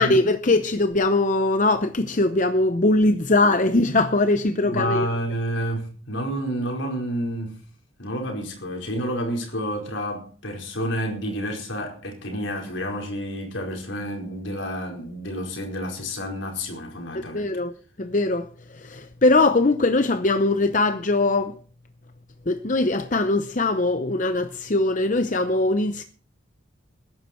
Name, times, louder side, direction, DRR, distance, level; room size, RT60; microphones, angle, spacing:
voice 1, 0.0-5.1 17.1-17.7 18.0-18.5 18.7-21.6 22.5-26.0, left 2 dB, 40° left, 0.7 m, -21 dB
voice 2, 4.6-7.6 8.0-17.5, equal, 65° left, 4.7 m, -29 dB
21.0 x 11.0 x 4.5 m
head